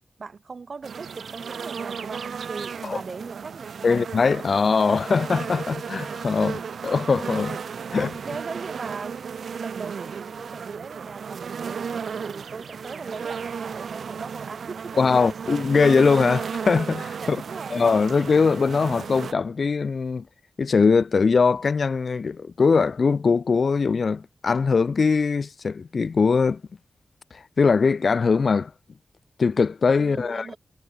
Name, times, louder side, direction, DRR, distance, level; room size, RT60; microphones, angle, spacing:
voice 1, 0.2-4.0 7.9-9.2 9.5-15.0 17.2-17.8 30.0-30.6, right 4 dB, 50° right, 4.0 m, -39 dB
sound 1, 0.8-19.3, right 6 dB, 80° right, 0.5 m, -34 dB
voice 2, 3.8-7.6 7.9-8.1 15.0-17.4 17.7-20.2 20.6-26.6 27.3-28.7 29.4-30.5, left 5 dB, 55° left, 0.3 m, -21 dB
wide cardioid pair, 120°, 0 cm